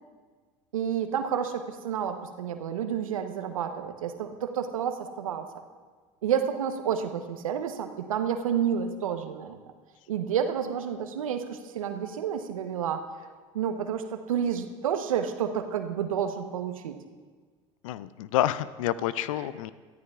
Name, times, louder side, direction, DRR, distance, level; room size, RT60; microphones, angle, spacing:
voice 1, 0.7-5.4 6.2-9.6 10.1-13.0 13.5-17.0, right 8 dB, 85° right, 7 dB, 1.0 m, -30 dB
voice 2, 17.8-19.7, left 13 dB, 75° left, 16 dB, 0.5 m, -28 dB
22.5 x 14.0 x 2.4 m, 1.5 s
hypercardioid pair, 70°, 17 cm